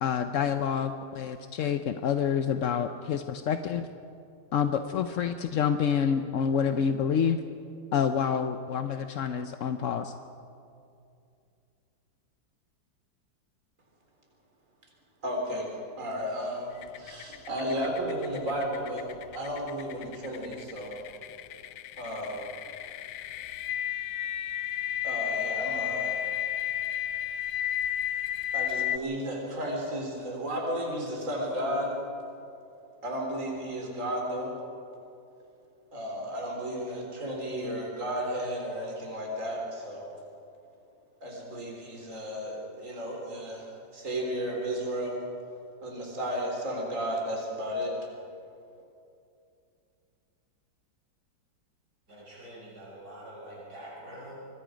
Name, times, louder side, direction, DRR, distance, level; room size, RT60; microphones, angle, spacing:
voice 1, 0.0-3.9 4.5-7.4 7.9-10.1, left 7 dB, 65° left, 8 dB, 0.8 m, -28 dB
voice 2, 15.2-15.7 16.0-16.7 17.0-19.1 19.3-20.9 22.0-22.5 25.0-26.2 28.5-31.9 33.0-34.5 35.9-40.1 41.2-43.7 43.9-45.2 45.8-47.9, equal, 40° right, -1 dB, 4.2 m, -33 dB
sound 1, 16.8-29.0, left 11 dB, 85° left, 1.4 m, -33 dB
voice 3, 52.1-54.3, right 1 dB, 55° right, -5 dB, 6.4 m, -45 dB
26.5 x 21.5 x 5.1 m, 2.6 s
omnidirectional pair, 2.1 m